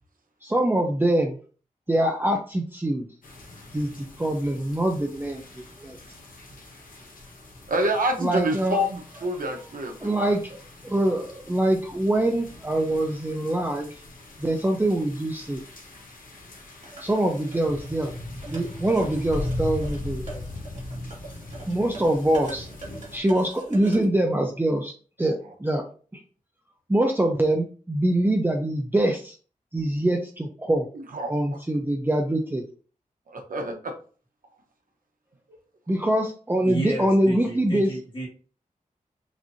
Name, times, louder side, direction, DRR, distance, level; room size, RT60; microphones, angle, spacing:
voice 1, 0.4-1.4 1.9-3.1 3.7-5.4 5.8-6.0 8.2-8.8 10.0-10.4 10.8-13.9 14.4-15.6 17.0-18.1 18.4-20.4 21.7-22.7 23.1-24.9 25.2-25.9 26.1-26.2 26.9-29.4 29.7-30.9 31.3-32.6 35.9-37.9, right 1 dB, 15° right, 2 dB, 0.6 m, -24 dB
sound 1, 3.2-23.2, left 2 dB, 75° left, 1.2 m, -40 dB
voice 2, 7.7-10.3 30.9-31.3 33.3-33.9 35.5-35.6, right 1 dB, 80° right, 3 dB, 1.0 m, -27 dB
sound 2, 16.8-24.0, right 3 dB, 55° right, 2.1 m, -43 dB
voice 3, 36.6-38.3, equal, 35° left, -4 dB, 1.8 m, -32 dB
6.1 x 2.7 x 2.7 m, 0.40 s
wide cardioid pair, 85°, 14 cm